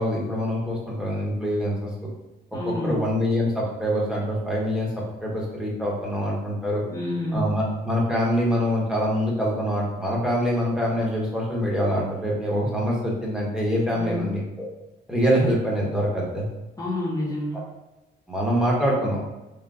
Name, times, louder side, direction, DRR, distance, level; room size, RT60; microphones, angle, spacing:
voice 1, 0.0-1.9 2.8-4.9 5.2-6.8 7.3-14.4 15.1-16.5 18.3-19.2, equal, 5° right, -4 dB, 1.0 m, -24 dB
voice 2, 2.5-3.1 6.9-7.5 13.9-14.3 16.8-17.7, left 1 dB, 20° left, -7 dB, 0.7 m, -28 dB
3.9 x 2.2 x 2.4 m, 1.0 s
cardioid pair, 90°, 20 cm